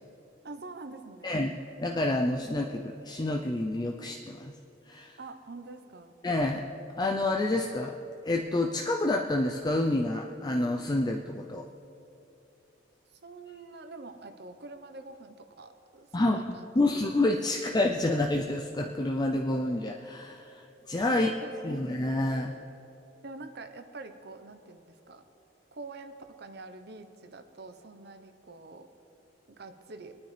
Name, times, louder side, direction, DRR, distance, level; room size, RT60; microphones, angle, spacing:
voice 1, 0.4-1.4 5.2-6.1 13.2-17.0 21.1-21.8 23.2-25.2 25.7-28.9 29.6-30.2, right 3 dB, 60° right, 7 dB, 0.9 m, -45 dB
voice 2, 1.8-4.5 4.9-5.2 6.2-6.6 7.0-8.0 8.2-11.7 16.1-16.4 16.7-20.6 20.9-21.3 21.6-22.6, left 2 dB, 25° left, 1 dB, 0.5 m, -28 dB
25.0 x 9.5 x 3.4 m, 2.8 s
head